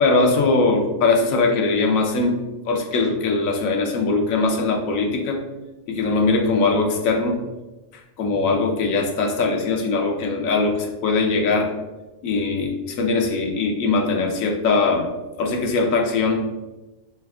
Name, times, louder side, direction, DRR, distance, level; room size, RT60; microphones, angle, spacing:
voice 1, 0.0-2.4 2.7-5.4 5.9-7.4 8.2-11.7 12.2-15.1 15.4-16.4, left 3 dB, 90° left, 2 dB, 1.1 m, -21 dB
3.4 x 3.2 x 3.5 m, 1.1 s
omnidirectional pair, 1.4 m